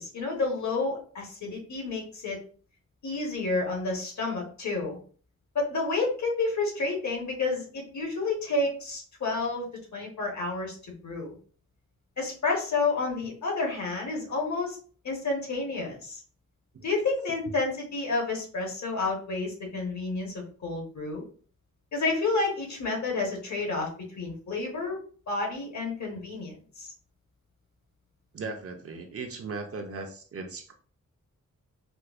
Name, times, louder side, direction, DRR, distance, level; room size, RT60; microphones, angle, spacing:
voice 1, 0.0-2.4 3.0-5.0 5.5-9.7 9.9-10.8 11.0-11.4 12.2-14.8 15.0-16.2 16.8-21.2 21.9-25.0 25.3-26.9, left 3 dB, 60° left, -1 dB, 1.2 m, -30 dB
voice 2, 28.3-30.7, right 3 dB, 50° right, 4 dB, 0.5 m, -37 dB
4.4 x 2.0 x 2.4 m, 0.42 s
wide cardioid pair, 170°, 31 cm